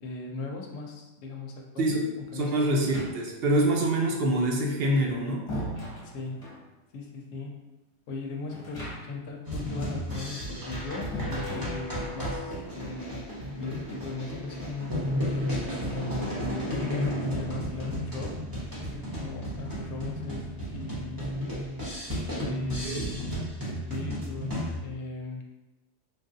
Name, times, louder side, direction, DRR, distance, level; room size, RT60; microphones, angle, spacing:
voice 1, 0.0-2.0 2.3-2.9 6.0-6.5 6.9-7.6 8.1-13.2 13.6-15.1 15.8-18.4 18.9-21.2 22.4-23.4 23.7-25.4, left 3 dB, 70° left, 1 dB, 0.8 m, -38 dB
voice 2, 2.3-5.5 22.8-23.1, right 1 dB, 60° right, 0 dB, 0.7 m, -25 dB
sound 1, 2.7-3.6 4.8-6.7 8.5-9.3 9.6-9.7 11.1-12.2, equal, 30° left, 0.7 m, -38 dB
sound 2, 9.4-24.8, equal, 20° right, 0.7 m, -33 dB
3.3 x 2.4 x 2.6 m, 0.97 s
omnidirectional pair, 1.2 m